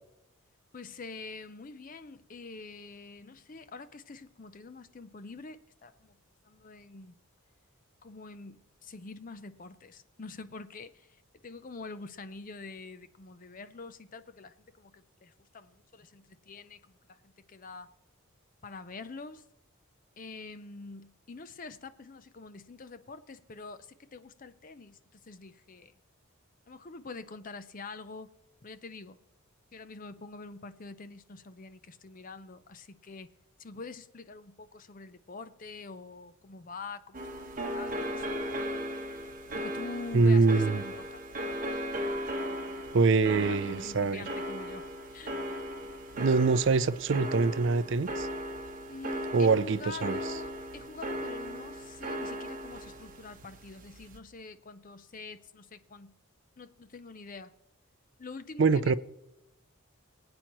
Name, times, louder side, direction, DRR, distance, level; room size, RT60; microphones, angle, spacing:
voice 1, 0.7-6.2 6.4-7.1 8.0-17.9 18.6-19.4 20.2-25.9 26.7-28.3 28.6-29.2 29.7-33.3 33.6-37.3 37.7-38.4 39.5-41.2 43.2-45.4 48.9-56.1 56.6-57.5 58.2-58.9, left 3 dB, 40° left, 0.5 m, -46 dB
sound 1, 37.1-54.2, equal, 35° right, 1.2 m, -37 dB
voice 2, 40.1-40.8 42.9-44.2 46.2-48.3 49.3-50.2 58.6-58.9, right 4 dB, 55° right, 0.4 m, -24 dB
22.5 x 8.7 x 3.0 m
head